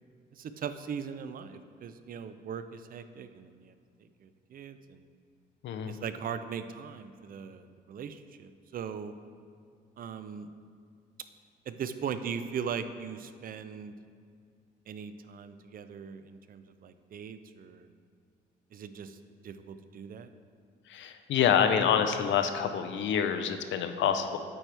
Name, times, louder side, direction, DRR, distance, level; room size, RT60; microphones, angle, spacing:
voice 1, 0.3-3.7 4.0-5.0 5.9-9.1 10.0-10.5 11.7-13.9 14.9-17.9 18.7-19.2 19.4-20.3, right 7 dB, 45° right, 10 dB, 0.4 m, -39 dB
voice 2, 20.9-24.4, left 8 dB, 70° left, 7 dB, 0.5 m, -27 dB
8.6 x 4.5 x 3.3 m, 2.2 s
cardioid pair, 90°, 20 cm